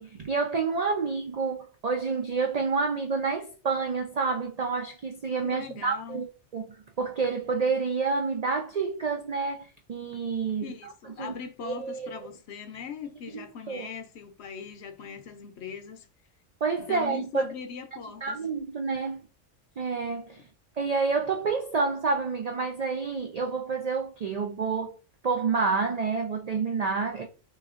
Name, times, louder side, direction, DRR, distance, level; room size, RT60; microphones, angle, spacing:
voice 1, 0.0-6.3 6.5-6.7 7.0-10.7 11.2-11.4 11.6-12.1 13.3-13.9 16.6-17.5 18.2-19.2 19.8-20.5 20.8-25.0 25.2-27.2, right 4 dB, 75° right, 0.3 m, -28 dB
voice 2, 5.4-6.2 10.6-16.1 16.8-18.4, left 6 dB, 65° left, 0.8 m, -40 dB
6.2 x 2.6 x 2.4 m
omnidirectional pair, 1.3 m